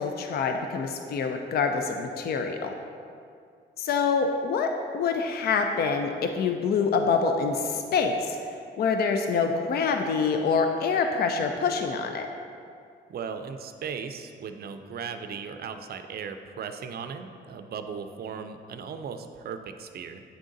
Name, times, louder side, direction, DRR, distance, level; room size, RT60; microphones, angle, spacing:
voice 1, 0.0-2.7 3.8-12.3, left 5 dB, 50° left, 5 dB, 0.5 m, -26 dB
voice 2, 13.1-20.2, right 6 dB, 50° right, 8 dB, 0.5 m, -37 dB
8.1 x 3.7 x 3.9 m, 2.3 s
cardioid pair, 90°, 20 cm